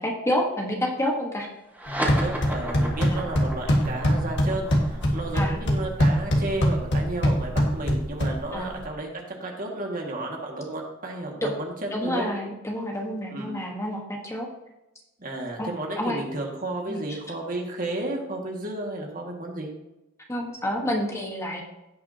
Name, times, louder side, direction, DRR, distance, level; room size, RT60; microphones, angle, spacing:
voice 1, 0.0-1.5 2.0-2.1 3.1-3.3 5.3-5.6 8.5-8.7 11.4-11.5 11.9-14.5 15.6-15.7 16.0-16.2 16.9-17.2 20.3-21.6, left 1 dB, 15° left, 0 dB, 1.3 m, -29 dB
sound 1, 1.7-8.5, equal, 10° right, 2.2 m, -36 dB
sound 2, 1.9-8.9, equal, 60° left, 1.7 m, -24 dB
voice 2, 2.0-12.3 13.3-13.5 15.2-19.7, right 2 dB, 45° right, 0 dB, 1.9 m, -33 dB
17.0 x 5.9 x 2.8 m, 0.97 s
head